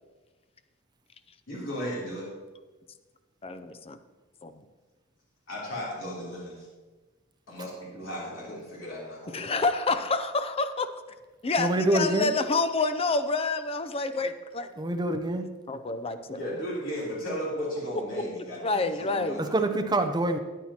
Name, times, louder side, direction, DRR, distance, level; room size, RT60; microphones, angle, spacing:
voice 1, 1.5-2.3 5.5-6.7 7.5-9.4 16.1-19.8, equal, 65° left, -6 dB, 3.2 m, -35 dB
voice 2, 3.4-4.0 4.4-4.5 9.3-10.9 11.4-14.7 15.7-16.4 18.6-19.4, left 3 dB, 30° left, 10 dB, 0.5 m, -28 dB
voice 3, 11.6-12.3 14.8-15.5 19.4-20.4, right 1 dB, 20° right, 6 dB, 0.6 m, -25 dB
13.0 x 8.9 x 2.9 m, 1.3 s
head